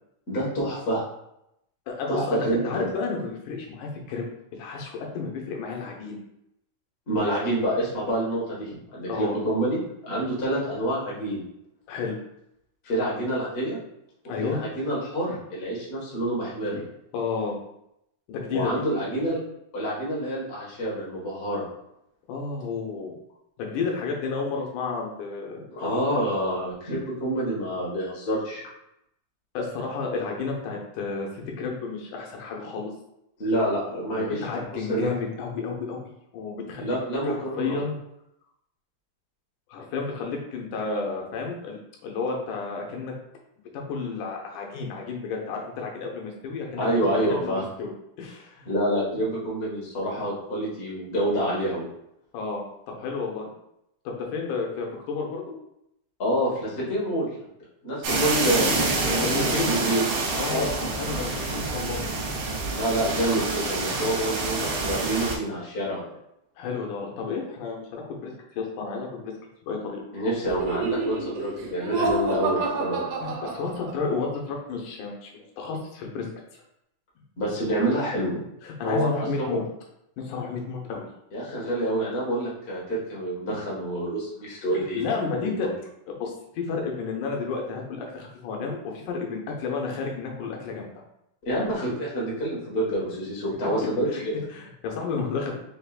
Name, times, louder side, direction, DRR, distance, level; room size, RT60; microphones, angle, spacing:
voice 1, 0.3-1.0 2.1-2.8 7.1-11.4 12.8-13.8 14.4-16.9 18.5-19.4 19.7-21.6 25.7-28.6 33.4-34.4 34.9-35.1 36.8-37.8 46.8-47.6 48.6-51.9 56.2-57.3 57.8-60.1 60.4-60.7 62.7-66.1 70.1-73.0 77.4-78.4 78.8-79.6 81.3-85.0 85.6-85.7 91.4-94.4, right 1 dB, 55° left, -5 dB, 0.6 m, -27 dB
voice 2, 1.9-4.2 4.5-6.2 9.1-9.3 11.9-12.2 14.3-14.6 17.1-17.6 18.3-18.7 22.3-23.2 23.6-25.6 29.5-32.9 34.1-36.0 36.3-37.0 37.2-38.0 39.7-43.1 43.7-47.5 47.8-47.9 48.2-48.7 52.3-52.6 53.0-53.5 54.1-55.4 58.1-58.2 59.1-59.8 60.3-60.7 61.0-62.0 66.6-69.3 69.6-70.0 73.2-76.3 76.5-76.6 78.6-79.6 80.2-81.1 84.7-85.7 86.1-90.9 94.1-94.2 94.5-95.6, left 4 dB, 80° left, 0 dB, 2.3 m, -31 dB
sound 1, 58.0-65.4, right 3 dB, 70° right, 1.3 m, -27 dB
Laughter, 70.5-74.2, right 3 dB, 85° right, 2.1 m, -29 dB
5.2 x 3.5 x 2.4 m, 0.80 s
omnidirectional pair, 3.5 m